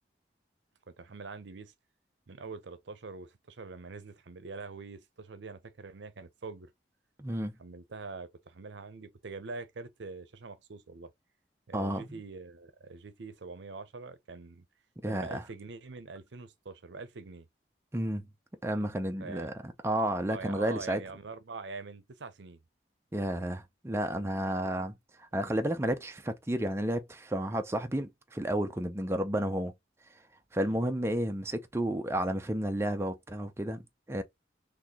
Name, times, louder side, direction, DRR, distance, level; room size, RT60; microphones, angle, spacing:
voice 1, 0.9-1.7 2.3-6.7 7.6-11.1 11.7-14.7 15.1-17.5 19.2-19.5 20.3-22.6 25.3-25.4 30.6-30.8, right 4 dB, 75° right, 0.6 m, -44 dB
voice 2, 7.2-7.5 11.7-12.2 15.0-15.4 17.9-18.3 18.6-21.0 23.1-29.7 30.5-34.2, right 1 dB, 15° right, 0.4 m, -32 dB
4.1 x 3.0 x 2.8 m
head